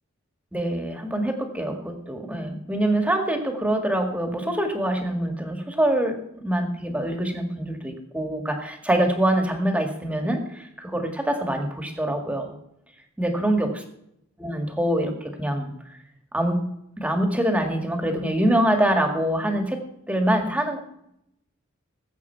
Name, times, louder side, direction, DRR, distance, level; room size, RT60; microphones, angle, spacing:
voice 1, 0.5-12.6 13.2-13.7 14.4-16.0 16.3-16.7 17.0-20.8, right 1 dB, 5° right, 4 dB, 1.9 m, -25 dB
19.5 x 8.2 x 4.6 m, 0.79 s
head